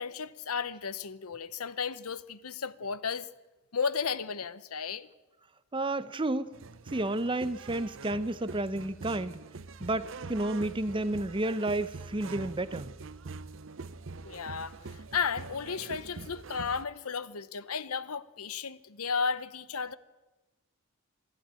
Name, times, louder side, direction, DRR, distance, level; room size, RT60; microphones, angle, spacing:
voice 1, 0.0-3.3 3.7-5.1 14.2-20.0, left 6 dB, 85° left, 0.9 m, -34 dB
voice 2, 5.7-6.5 6.9-9.4 9.8-12.9, right 2 dB, 20° right, 0.7 m, -31 dB
sound 1, 6.5-16.9, right 4 dB, 60° right, 0.6 m, -44 dB
24.5 x 13.0 x 9.0 m
head